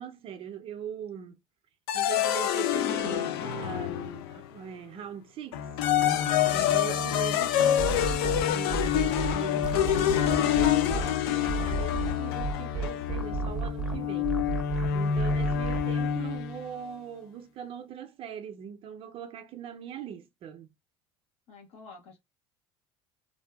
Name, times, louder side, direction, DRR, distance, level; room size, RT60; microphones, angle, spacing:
voice 1, 0.0-1.4 1.9-5.7 6.5-14.4 14.9-20.7, right 8 dB, 45° right, 0.5 m, -41 dB
sound 1, 1.9-4.5 5.5-16.6, left 10 dB, 85° left, 0.4 m, -27 dB
sound 2, 7.8-11.0 11.5-15.9, right 5 dB, 5° right, 0.7 m, -32 dB
voice 2, 21.5-22.2, left 4 dB, 55° left, 1.0 m, -48 dB
2.6 x 2.3 x 2.3 m
supercardioid pair, 90°, 13 cm